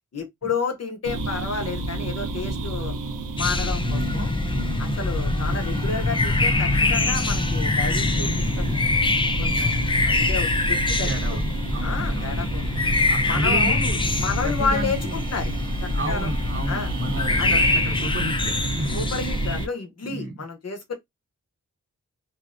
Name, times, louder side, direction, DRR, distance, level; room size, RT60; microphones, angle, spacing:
voice 1, 0.1-2.9 3.4-4.3 4.8-8.8 9.4-11.4 11.8-12.6 13.3-13.8 14.2-15.5 15.8-16.3 16.7-16.9 17.4-17.6 18.9-20.9, left 5 dB, 55° left, 0.8 m, -31 dB
sound 1, 1.0-19.7, right 3 dB, 80° right, 0.6 m, -33 dB
sound 2, 3.4-19.7, left 2 dB, 15° left, 0.4 m, -24 dB
voice 2, 3.8-5.1 11.0-12.6 13.1-14.0 14.4-15.1 15.9-19.0 20.0-20.4, right 2 dB, 45° right, 1.0 m, -32 dB
2.5 x 2.1 x 2.4 m
cardioid pair, 60°, 31 cm